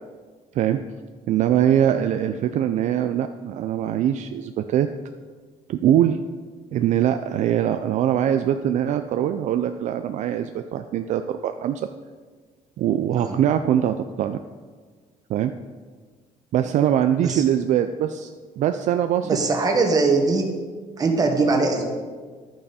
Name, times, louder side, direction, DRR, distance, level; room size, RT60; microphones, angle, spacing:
voice 1, 1.3-4.9 5.7-6.2 6.7-11.8 12.8-14.4 15.3-15.5 16.5-18.3 18.6-19.3, right 10 dB, 60° right, 8 dB, 0.4 m, -22 dB
voice 2, 19.2-20.4 21.0-21.9, right 3 dB, 25° right, 3 dB, 1.5 m, -21 dB
11.0 x 8.7 x 4.2 m, 1.5 s
cardioid pair, 150°, 14 cm